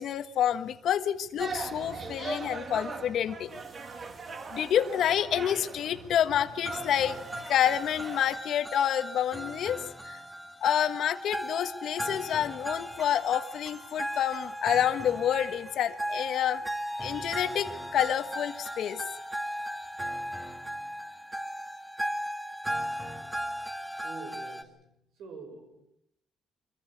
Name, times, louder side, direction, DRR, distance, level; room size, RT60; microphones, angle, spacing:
voice 1, 0.0-3.6 4.5-7.2 7.5-10.2 10.6-16.6 17.0-19.0, left 10 dB, 70° left, 1.4 m, -28 dB
sound 1, 1.4-8.4, right 3 dB, 45° right, 1.8 m, -40 dB
sound 2, 6.6-24.6, equal, 10° right, 2.4 m, -37 dB
voice 2, 24.0-25.8, right 3 dB, 80° right, 5.8 m, -46 dB
24.5 x 15.0 x 8.7 m
cardioid pair, 90°, 0 cm